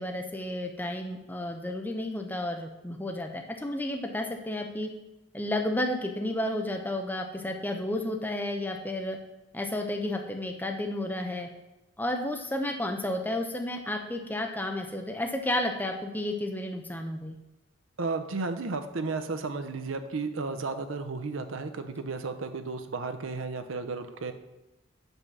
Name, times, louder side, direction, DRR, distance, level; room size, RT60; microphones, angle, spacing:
voice 1, 0.0-4.9 5.3-9.2 9.5-11.5 12.0-17.4, left 1 dB, 10° left, 3 dB, 0.5 m, -32 dB
voice 2, 18.0-24.3, right 3 dB, 80° right, 9 dB, 0.6 m, -33 dB
5.6 x 5.4 x 6.1 m, 0.99 s
head